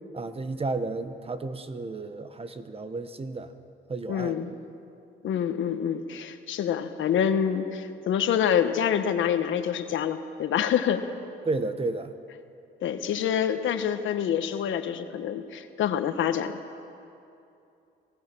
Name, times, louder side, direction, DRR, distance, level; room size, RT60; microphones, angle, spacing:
voice 1, 0.1-3.5 3.9-4.4 11.4-12.1, right 3 dB, 30° right, 10 dB, 1.3 m, -32 dB
voice 2, 4.1-4.5 5.2-11.0 12.8-16.6, left 8 dB, 75° left, 9 dB, 1.3 m, -26 dB
26.0 x 18.5 x 6.2 m, 2.7 s
cardioid pair, 90°, 20 cm